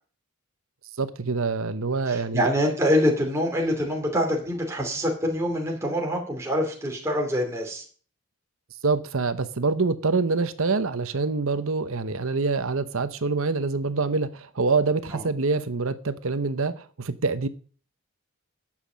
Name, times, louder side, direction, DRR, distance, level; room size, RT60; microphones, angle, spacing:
voice 1, 1.0-2.5 8.8-17.5, right 4 dB, 70° right, 0.9 m, -25 dB
voice 2, 2.1-7.8 15.1-15.2, equal, 15° right, 2.6 m, -25 dB
11.0 x 7.5 x 6.2 m
head